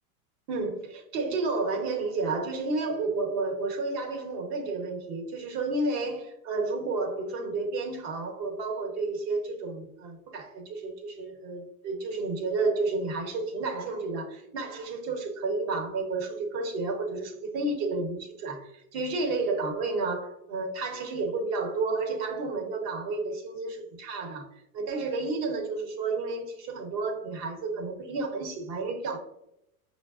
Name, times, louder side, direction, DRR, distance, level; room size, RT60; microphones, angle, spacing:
voice 1, 0.5-24.5 24.7-29.2, right 3 dB, 45° right, 0.8 m, -31 dB
6.1 x 2.0 x 2.3 m
supercardioid pair, 140°, 44 cm